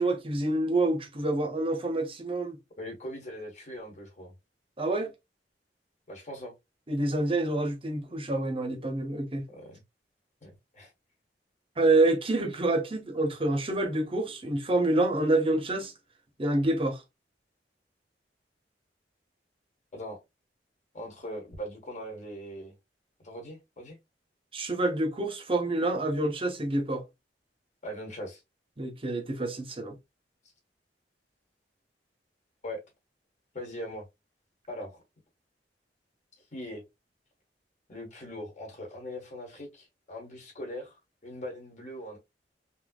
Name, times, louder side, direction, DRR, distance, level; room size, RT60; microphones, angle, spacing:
voice 1, 0.0-2.6 4.8-5.1 6.9-9.5 11.8-15.9 16.4-17.0 24.5-27.0 28.8-30.0, right 2 dB, 30° right, 0.8 m, -27 dB
voice 2, 2.8-4.3 6.1-6.5 9.5-9.8 10.4-10.9 19.9-20.2 20.9-22.7 23.2-24.0 27.8-28.4 32.6-32.8 33.5-34.1 34.7-35.0 36.5-36.8 37.9-42.2, equal, 45° left, 1.4 m, -40 dB
3.5 x 2.8 x 2.3 m
head